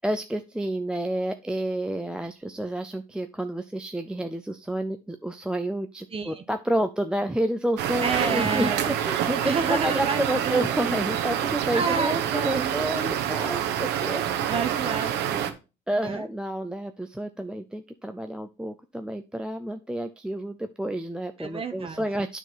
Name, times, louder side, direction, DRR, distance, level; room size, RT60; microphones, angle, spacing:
voice 1, 0.0-14.5 15.9-22.4, right 1 dB, 5° right, 7 dB, 0.4 m, -30 dB
voice 2, 6.1-6.4 8.0-8.9 9.4-10.9 11.7-12.8 14.5-15.6 16.0-16.3 21.4-22.1, right 4 dB, 35° right, 7 dB, 0.9 m, -30 dB
sound 1, 7.8-15.5, right 10 dB, 85° right, 1.0 m, -27 dB
9.4 x 4.0 x 4.5 m, 0.30 s
cardioid pair, 110°, 17 cm